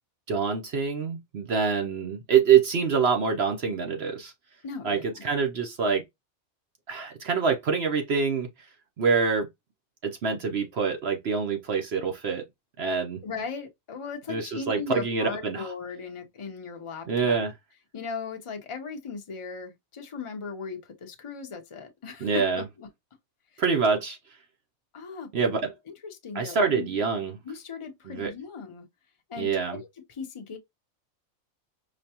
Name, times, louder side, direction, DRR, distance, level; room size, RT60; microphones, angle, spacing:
voice 1, 0.3-4.3 4.8-6.0 6.9-8.7 9.0-9.5 10.0-12.4 12.8-13.2 14.3-15.7 17.1-17.5 22.2-22.6 23.6-24.2 25.3-25.7 26.3-27.4 28.1-28.3 29.4-29.8, right 6 dB, 55° right, 0.8 m, -25 dB
voice 2, 4.6-5.2 13.2-17.4 17.9-22.9 23.5-23.6 24.9-25.3 26.0-27.0 27.4-28.9 29.3-30.6, left 5 dB, 30° left, 0.6 m, -38 dB
5.1 x 2.2 x 2.8 m
omnidirectional pair, 1.5 m